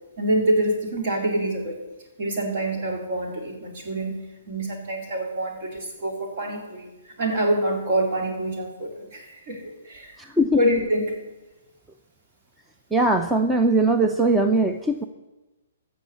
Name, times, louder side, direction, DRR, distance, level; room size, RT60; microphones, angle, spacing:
voice 1, 0.2-1.7 2.2-4.2 4.5-6.9 7.2-10.2 10.6-11.1, right 1 dB, 50° right, 1 dB, 4.1 m, -26 dB
voice 2, 10.2-10.6 12.9-15.0, right 2 dB, 5° right, 5 dB, 0.6 m, -20 dB
15.0 x 6.5 x 8.4 m, 1.1 s
hypercardioid pair, 145°, 0 cm